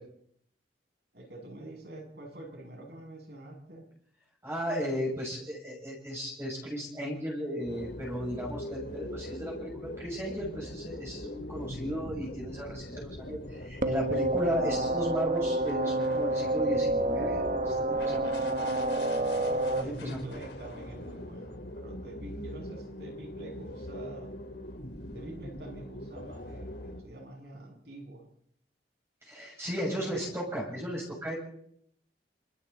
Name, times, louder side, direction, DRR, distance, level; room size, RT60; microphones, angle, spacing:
voice 1, 1.1-3.9 8.4-8.8 17.9-18.9 19.8-24.3 25.1-28.2 29.9-30.0, right 1 dB, 65° right, 1 dB, 7.8 m, -46 dB
voice 2, 4.4-18.2 18.6-18.7 19.8-20.2 29.2-31.4, equal, 15° right, -4 dB, 6.8 m, -35 dB
sound 1, 7.6-27.0, left 1 dB, 80° left, 3.9 m, -42 dB
sound 2, 13.8-19.8, right 2 dB, 45° right, 1.3 m, -28 dB
27.5 x 27.5 x 4.2 m, 0.69 s
head